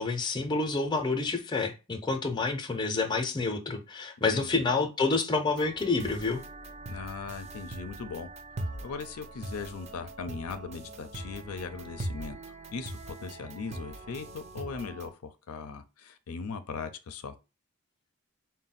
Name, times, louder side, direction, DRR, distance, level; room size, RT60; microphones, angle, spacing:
voice 1, 0.0-6.4, left 3 dB, 20° left, 0.6 m, -28 dB
voice 2, 4.2-4.6 6.9-8.3 8.6-12.4 12.7-17.4, left 5 dB, 85° left, 0.5 m, -39 dB
sound 1, 5.5-15.1, right 2 dB, 30° right, 0.3 m, -41 dB
4.0 x 2.1 x 4.1 m
head